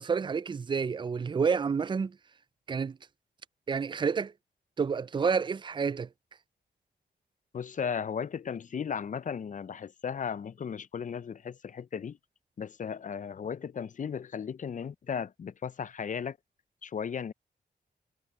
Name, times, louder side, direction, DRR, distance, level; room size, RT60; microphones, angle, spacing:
voice 1, 0.0-2.2 2.7-3.0 3.7-4.3 4.8-6.1, right 5 dB, 25° right, 0.4 m, -29 dB
voice 2, 7.5-12.2 12.6-16.4 16.8-17.3, left 7 dB, 45° left, 0.5 m, -35 dB
cardioid pair, 65°, 18 cm